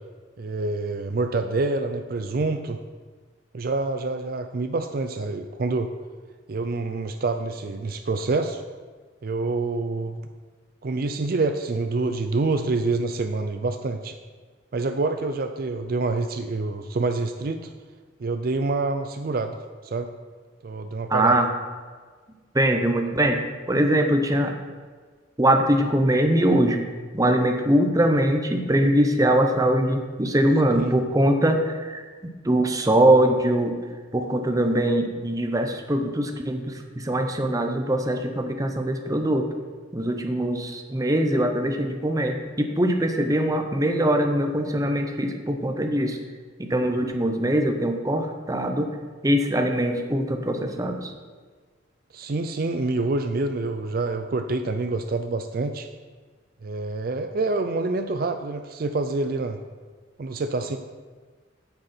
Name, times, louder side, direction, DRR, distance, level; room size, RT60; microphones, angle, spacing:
voice 1, 0.4-2.8 3.5-5.9 6.5-8.6 9.2-10.2 10.8-14.2 14.7-17.7 18.2-20.1 20.6-21.4 30.7-31.0 52.1-55.9 56.6-59.6 60.2-60.8, right 3 dB, 55° right, 7 dB, 0.5 m, -27 dB
voice 2, 21.1-21.5 22.5-23.4 23.7-24.5 25.4-26.8 27.1-32.0 32.4-33.8 34.1-39.5 39.9-46.2 46.6-48.9 49.2-51.1, right 1 dB, 20° right, 4 dB, 0.9 m, -22 dB
9.6 x 8.0 x 4.4 m, 1.5 s
head